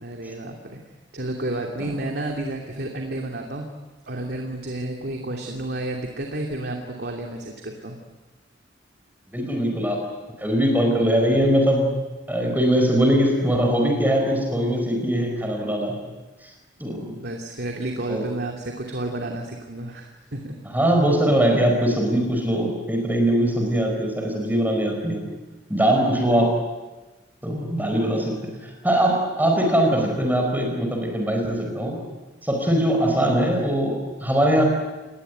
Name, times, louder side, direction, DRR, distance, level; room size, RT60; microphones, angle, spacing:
voice 1, 0.0-0.8 1.1-3.7 4.0-8.0 16.9-20.5, right 1 dB, 55° right, 2 dB, 2.7 m, -31 dB
voice 2, 9.3-10.0 10.4-11.9 12.3-15.9 16.8-17.1 18.1-18.2 20.7-25.3 25.7-26.6 27.4-32.0 32.4-34.7, right 1 dB, 10° right, 1 dB, 4.7 m, -21 dB
29.0 x 20.0 x 9.2 m, 1.2 s
head